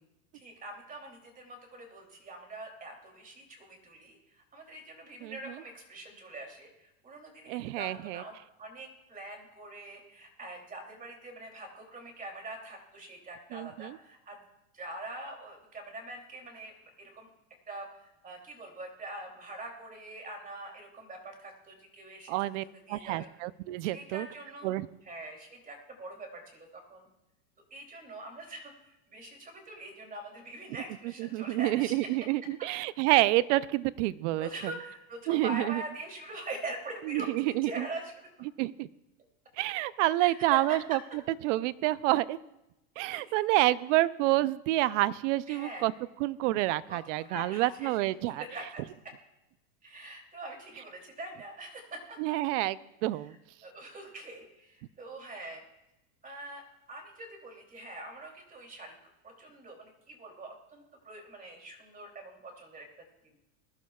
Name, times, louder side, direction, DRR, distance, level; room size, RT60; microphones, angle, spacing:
voice 1, 0.3-14.4 14.7-17.3 17.7-22.3 22.6-23.3 23.9-24.7 25.0-27.1 27.7-31.9 34.4-37.3 37.6-38.1 40.2-40.6 43.0-43.2 45.5-45.9 46.9-48.8 49.8-52.2 53.6-55.6 56.2-56.6 56.9-59.0 59.2-62.9 63.2-63.4, right 2 dB, 20° right, 3 dB, 2.9 m, -44 dB
voice 2, 7.5-8.2 13.5-14.0 22.3-24.3 24.6-24.9 31.2-34.7 35.3-35.8 37.1-37.9 38.6-38.9 39.6-41.0 41.4-42.4 43.0-45.9 46.2-48.4 52.2-53.3, right 17 dB, 60° right, 18 dB, 0.6 m, -28 dB
21.0 x 12.0 x 2.4 m, 0.89 s
supercardioid pair, 130°, 41 cm